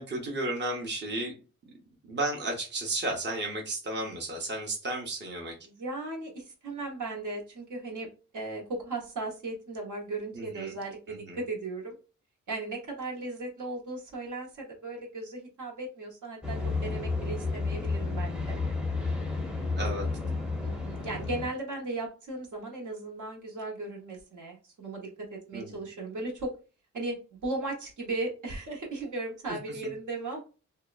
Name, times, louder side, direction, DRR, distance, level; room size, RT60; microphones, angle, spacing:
voice 1, 0.0-1.3 2.1-5.5 10.3-10.7 11.1-11.4 19.8-20.1 25.5-25.8, right 2 dB, 35° right, 1 dB, 0.8 m, -33 dB
voice 2, 5.6-8.1 8.3-12.0 12.5-18.6 20.6-26.5 26.9-30.4, right 2 dB, 70° right, 0 dB, 1.0 m, -37 dB
sound 1, 16.4-21.5, left 3 dB, 5° right, 0.7 m, -31 dB
2.8 x 2.1 x 2.3 m, 0.33 s
cardioid pair, 70°, 32 cm